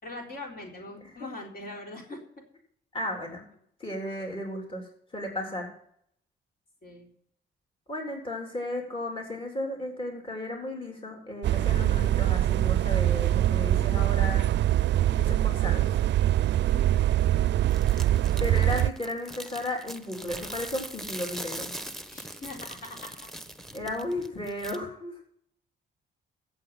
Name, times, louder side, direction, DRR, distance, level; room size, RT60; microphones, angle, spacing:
voice 1, 0.0-2.2 6.8-7.1 16.6-17.5 22.1-23.3, left 2 dB, 50° left, 0 dB, 3.9 m, -42 dB
voice 2, 1.0-1.3 2.9-3.5 3.8-4.9 5.1-5.7 7.9-14.5 15.1-15.9 18.4-21.7 23.7-25.2, left 1 dB, 25° left, 0 dB, 3.6 m, -34 dB
sound 1, 11.4-18.9, right 13 dB, 65° right, 0.5 m, -23 dB
sound 2, 17.7-24.8, right 1 dB, ahead, 1.2 m, -41 dB
14.0 x 7.5 x 5.8 m, 0.66 s
cardioid pair, 90°, 20 cm